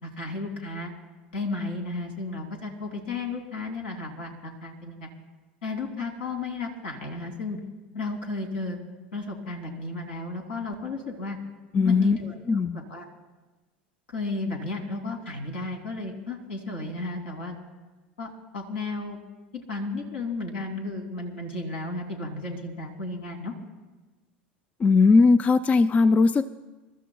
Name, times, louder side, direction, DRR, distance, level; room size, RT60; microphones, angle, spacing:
voice 1, 0.0-0.9 1.3-5.1 5.6-7.6 7.9-8.8 9.1-11.4 11.8-12.4 12.7-13.0 14.1-17.6 18.2-19.2 19.5-23.5, left 3 dB, 75° left, 1 dB, 2.5 m, -33 dB
voice 2, 11.7-12.2 12.5-12.8 24.8-26.5, left 4 dB, 25° left, 14 dB, 0.4 m, -19 dB
28.5 x 13.0 x 2.3 m, 1.2 s
hypercardioid pair, 85°, 6 cm